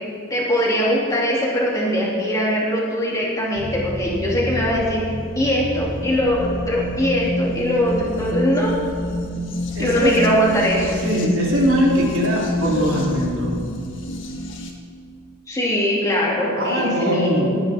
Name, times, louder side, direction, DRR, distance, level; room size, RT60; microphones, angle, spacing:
voice 1, 0.3-5.0 5.3-8.9 9.8-11.0 15.5-17.5, equal, 15° left, -6 dB, 2.8 m, -21 dB
sound 1, 3.6-14.7, left 1 dB, 60° left, 1.6 m, -28 dB
voice 2, 9.7-10.2 11.0-13.5 16.6-17.5, equal, 65° right, -3 dB, 3.0 m, -21 dB
18.5 x 9.5 x 3.7 m, 2.3 s
head